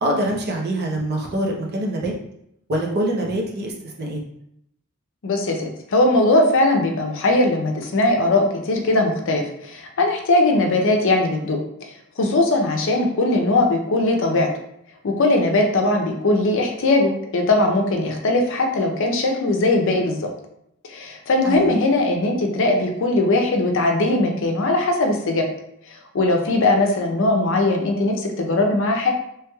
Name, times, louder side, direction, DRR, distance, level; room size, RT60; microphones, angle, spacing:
voice 1, 0.0-2.1 2.7-4.2 21.4-21.8, right 1 dB, 50° right, -1 dB, 0.7 m, -24 dB
voice 2, 5.2-11.6 12.2-14.5 15.0-20.2 20.9-25.4 26.1-29.1, left 2 dB, 60° left, 3 dB, 0.5 m, -19 dB
3.1 x 3.0 x 2.3 m, 0.75 s
head